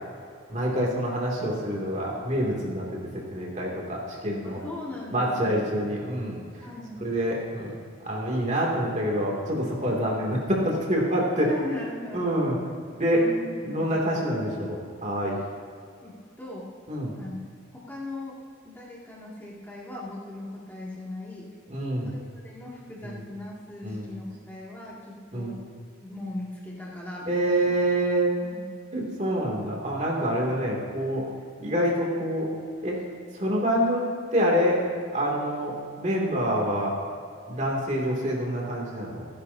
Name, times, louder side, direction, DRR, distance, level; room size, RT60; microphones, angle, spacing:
voice 1, 0.5-4.6 5.1-6.7 7.0-11.5 12.1-12.6 12.9-13.3 13.6-15.4 16.9-17.1 21.7-22.1 23.0-23.1 23.8-24.1 25.3-25.6 27.3-28.4 28.9-31.2 31.6-32.5 32.8-33.0 33.3-34.0 34.3-34.8 35.1-36.9 37.5-39.3, equal, 35° right, -2 dB, 2.7 m, -26 dB
voice 2, 4.4-5.8 6.6-7.1 11.4-12.4 13.1-13.9 16.0-16.7 17.1-17.4 17.7-18.4 18.6-21.5 22.0-25.6 26.0-27.7 28.4-28.7, left 2 dB, 10° left, -7 dB, 2.4 m, -39 dB
29.0 x 10.5 x 2.8 m, 2.2 s
head